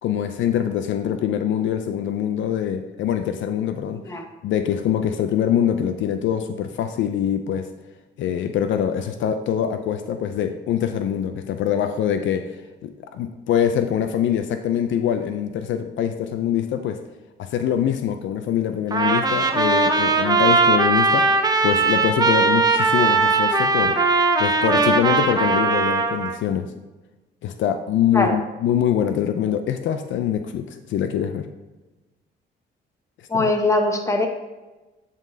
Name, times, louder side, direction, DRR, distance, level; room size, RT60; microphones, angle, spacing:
voice 1, 0.0-4.0 4.4-7.7 8.2-12.5 12.8-17.0 17.4-21.3 21.6-24.0 24.4-26.7 27.4-31.5 33.3-33.5, left 9 dB, 75° left, 8 dB, 0.5 m, -24 dB
voice 2, 3.9-4.2 28.1-28.4 33.3-34.3, left 2 dB, 15° left, 4 dB, 1.0 m, -21 dB
Trumpet, 18.9-26.4, right 3 dB, 20° right, 0.6 m, -19 dB
10.5 x 3.9 x 2.7 m, 1.1 s
cardioid pair, 90°, 20 cm